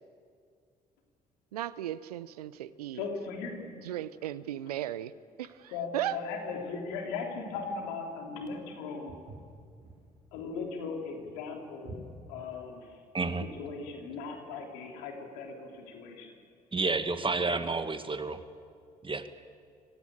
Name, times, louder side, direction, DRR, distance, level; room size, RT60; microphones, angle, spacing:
voice 1, 1.5-3.0 3.8-5.1 5.4-6.2, right 13 dB, 85° right, 18 dB, 0.6 m, -36 dB
voice 2, 2.9-3.7 5.7-9.1 10.3-13.0 13.6-16.3 17.4-17.6, left 4 dB, 75° left, 2 dB, 3.4 m, -38 dB
Walk footsteps, 9.1-13.6, right 2 dB, 65° right, 6.4 m, -49 dB
voice 3, 13.1-13.5 16.7-18.4 19.0-19.2, right 3 dB, 25° right, 9 dB, 1.8 m, -30 dB
25.5 x 16.5 x 8.9 m, 2.2 s
hypercardioid pair, 45°, 19 cm